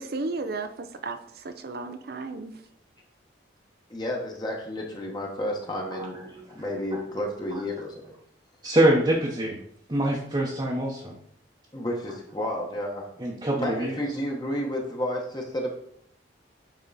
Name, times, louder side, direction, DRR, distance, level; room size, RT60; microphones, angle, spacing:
voice 1, 0.0-2.6, right 3 dB, 55° right, 8 dB, 0.5 m, -34 dB
voice 2, 3.9-8.1 11.7-13.1 13.5-15.7, left 1 dB, 25° left, 0 dB, 1.0 m, -31 dB
voice 3, 6.0-6.4 6.9-7.0 8.6-9.6 9.9-11.2 13.2-13.9, right 1 dB, 25° right, -2 dB, 0.9 m, -24 dB
8.9 x 3.6 x 4.0 m, 0.68 s
head